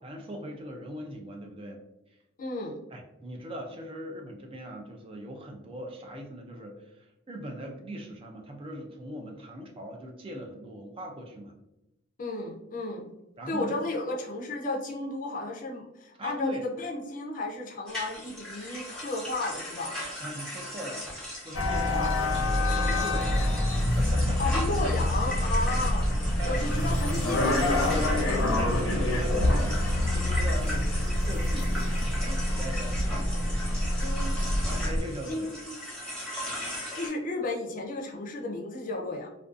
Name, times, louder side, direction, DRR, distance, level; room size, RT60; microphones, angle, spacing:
voice 1, 0.0-1.8 2.9-11.5 13.4-13.7 16.2-16.6 20.2-21.1 21.4-24.5 26.4-26.7 28.6-33.2 34.7-35.5, right 1 dB, 30° right, 2 dB, 0.3 m, -40 dB
voice 2, 2.4-2.8 12.2-13.1 13.5-20.0 21.9-22.2 24.4-26.1 26.4-28.3 34.0-34.4 35.3-35.8 36.9-39.3, left 2 dB, 45° left, 0 dB, 0.4 m, -33 dB
sound 1, 17.9-37.1, left 1 dB, 5° left, 0.8 m, -38 dB
sound 2, 21.5-35.0, left 1 dB, 90° left, 0.6 m, -26 dB
2.5 x 2.2 x 2.4 m, 0.90 s
head